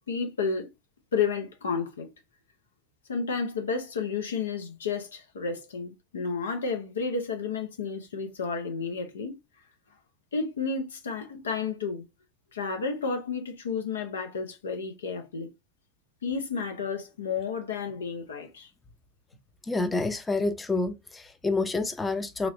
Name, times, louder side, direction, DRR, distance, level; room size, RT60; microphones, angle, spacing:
voice 1, 0.1-0.7 1.1-2.1 3.1-9.3 10.3-12.1 12.5-15.5 16.2-18.7, left 5 dB, 85° left, 0.7 m, -31 dB
voice 2, 19.7-22.5, left 3 dB, 15° left, 0.5 m, -28 dB
3.0 x 3.0 x 2.6 m
hypercardioid pair, 90°, 0 cm